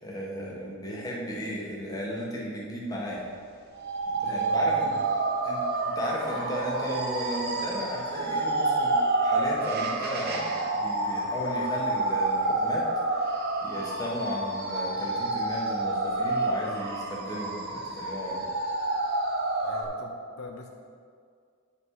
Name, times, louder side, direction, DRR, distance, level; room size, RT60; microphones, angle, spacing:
voice 1, 0.0-3.2 4.1-4.9 5.4-12.9 13.1-13.4 13.6-18.5, equal, 15° left, -4 dB, 1.5 m, -34 dB
sound 1, 3.7-19.8, right 2 dB, 45° right, 1.0 m, -29 dB
voice 2, 4.2-5.1 19.6-20.7, left 3 dB, 65° left, 2 dB, 0.7 m, -42 dB
9.7 x 5.7 x 4.9 m, 2.2 s
head